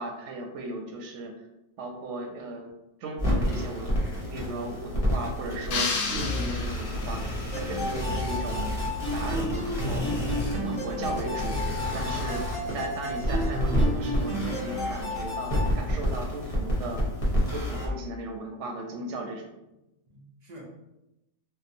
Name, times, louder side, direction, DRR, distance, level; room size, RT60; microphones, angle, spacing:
voice 1, 0.0-1.5 1.8-2.8 3.0-7.2 7.5-8.7 9.1-10.2 10.5-11.6 11.9-12.4 12.7-17.0 17.5-19.5, right 2 dB, 85° right, 2 dB, 0.9 m, -36 dB
sound 1, 3.2-17.9, equal, 35° left, 0.7 m, -29 dB
sound 2, 5.7-7.2, left 4 dB, 65° left, 0.7 m, -31 dB
sound 3, 7.5-15.7, left 1 dB, 5° right, 0.7 m, -33 dB
voice 2, 12.1-12.8 20.1-20.7, right 2 dB, 50° right, -2 dB, 0.5 m, -46 dB
2.6 x 2.1 x 2.5 m, 0.92 s
omnidirectional pair, 1.2 m